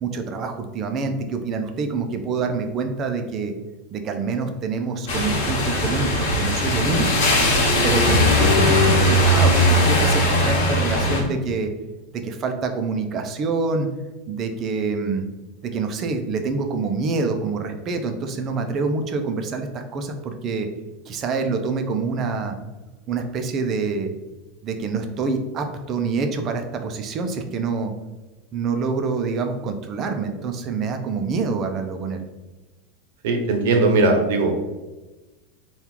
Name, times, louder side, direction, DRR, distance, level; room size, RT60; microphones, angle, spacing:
voice 1, 0.0-3.5 3.9-7.3 7.8-11.7 12.1-13.9 14.3-15.3 15.6-20.7 21.1-22.6 23.1-24.1 24.6-27.9 28.5-32.3, right 4 dB, 30° right, 6 dB, 0.4 m, -26 dB
sound 1, 5.1-11.2, left 1 dB, 65° left, 1.1 m, -19 dB
voice 2, 33.2-34.5, right 3 dB, 70° right, 4 dB, 0.8 m, -19 dB
4.4 x 2.3 x 3.6 m, 1.1 s
supercardioid pair, 165°, 0 cm